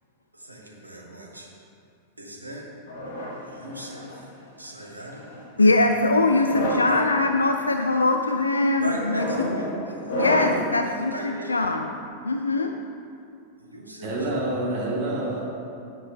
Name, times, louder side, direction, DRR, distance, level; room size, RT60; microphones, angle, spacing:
voice 1, 0.3-1.5 2.2-2.7 3.4-4.3 4.6-5.8 6.8-7.0 8.8-10.2 10.8-11.7 13.6-14.3, right 1 dB, 85° right, -1 dB, 1.4 m, -37 dB
sound 1, 2.9-4.3 5.1-5.5 6.3-7.0 7.6-8.0 8.9-10.8, equal, 60° left, 1.6 m, -30 dB
voice 2, 5.6-9.6 10.2-11.9 12.2-12.7, left 2 dB, 80° left, 5 dB, 0.4 m, -22 dB
voice 3, 14.0-15.4, right 1 dB, 45° right, -4 dB, 2.6 m, -27 dB
10.0 x 10.0 x 3.5 m, 2.5 s
figure-of-eight pair, 90°, 0 cm